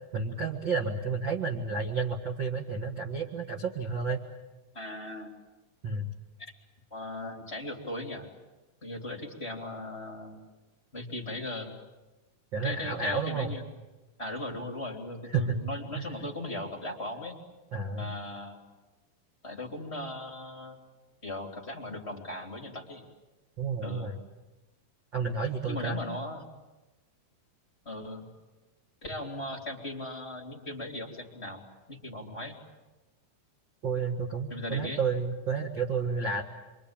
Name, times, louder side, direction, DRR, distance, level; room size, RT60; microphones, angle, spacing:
voice 1, 0.1-4.2 5.8-6.1 12.5-13.5 15.3-15.6 15.9-16.0 17.7-18.1 23.6-24.1 25.1-26.0 33.8-36.4, right 4 dB, 45° right, 1 dB, 1.7 m, -31 dB
voice 2, 4.7-5.3 6.4-6.5 6.9-8.3 8.8-10.4 10.9-11.7 12.6-13.6 14.2-17.4 18.0-18.6 19.4-20.8 21.2-23.0 23.8-24.1 25.7-26.4 27.8-28.3 29.0-31.6 31.9-32.6 34.5-35.0, left 1 dB, 20° left, 0 dB, 2.6 m, -38 dB
27.5 x 24.0 x 8.8 m, 1.1 s
omnidirectional pair, 4.2 m